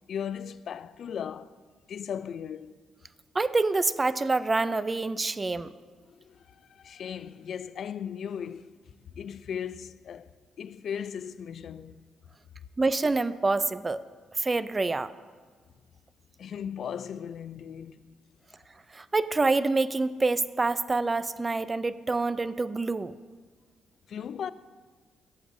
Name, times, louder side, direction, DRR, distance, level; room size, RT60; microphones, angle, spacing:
voice 1, 0.1-1.5 1.9-2.7 6.1-8.8 9.2-10.3 10.6-12.0 16.4-18.0 24.1-24.5, left 8 dB, 65° left, 0.4 m, -37 dB
voice 2, 3.3-5.7 12.8-14.0 14.4-15.1 18.9-23.1, right 3 dB, 30° right, 0.4 m, -26 dB
16.5 x 8.0 x 2.6 m
supercardioid pair, 55°, 0 cm